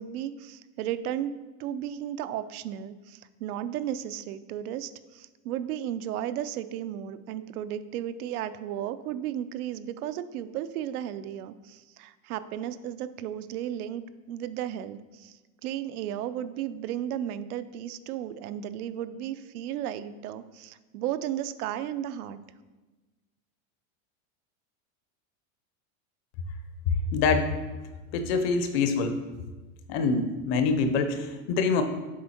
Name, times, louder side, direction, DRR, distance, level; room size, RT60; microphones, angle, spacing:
voice 1, 0.0-1.3 1.6-22.4, right 11 dB, 85° right, 12 dB, 0.6 m, -34 dB
voice 2, 27.1-27.5 28.1-29.1 29.9-31.8, left 4 dB, 45° left, 8 dB, 0.7 m, -25 dB
7.4 x 4.4 x 4.3 m, 1.2 s
supercardioid pair, 165°, 43 cm